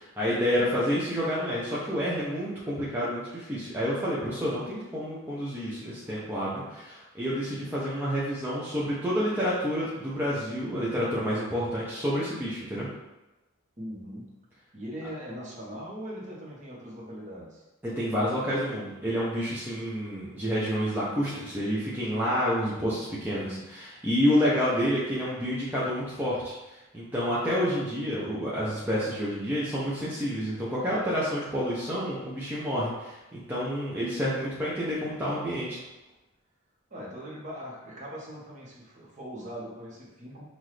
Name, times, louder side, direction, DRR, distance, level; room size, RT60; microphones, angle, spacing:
voice 1, 0.0-12.9 17.8-35.8, equal, 10° right, -9 dB, 0.7 m, -29 dB
voice 2, 13.8-14.3 14.7-17.6 23.1-23.7 36.9-40.4, equal, 35° right, -5 dB, 1.1 m, -40 dB
5.8 x 2.6 x 3.2 m, 1.0 s
head